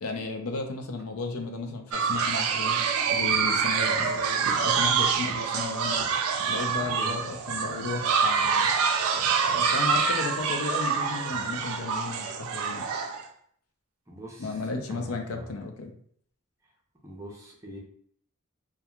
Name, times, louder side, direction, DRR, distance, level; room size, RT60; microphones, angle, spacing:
voice 1, 0.0-2.8 3.1-6.0 6.5-8.7 9.4-12.8 14.4-15.9, left 3 dB, 85° left, 4 dB, 0.5 m, -34 dB
sound 1, 1.9-13.2, right 6 dB, 80° right, 0.4 m, -26 dB
voice 2, 14.1-14.6 14.9-15.5 17.0-17.8, right 1 dB, 15° right, -3 dB, 0.5 m, -43 dB
2.8 x 2.3 x 2.3 m, 0.63 s
head